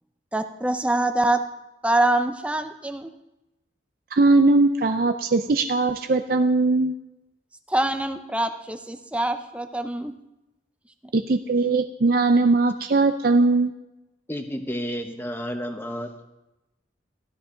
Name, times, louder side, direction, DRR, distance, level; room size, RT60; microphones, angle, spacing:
voice 1, 0.3-1.4 1.8-3.1 7.7-10.1, right 1 dB, 5° right, 8 dB, 0.6 m, -24 dB
voice 2, 4.1-6.9 11.1-13.7, right 3 dB, 50° right, 7 dB, 0.5 m, -20 dB
voice 3, 14.3-16.2, equal, 10° left, 5 dB, 1.0 m, -31 dB
15.5 x 12.5 x 3.9 m, 0.97 s
head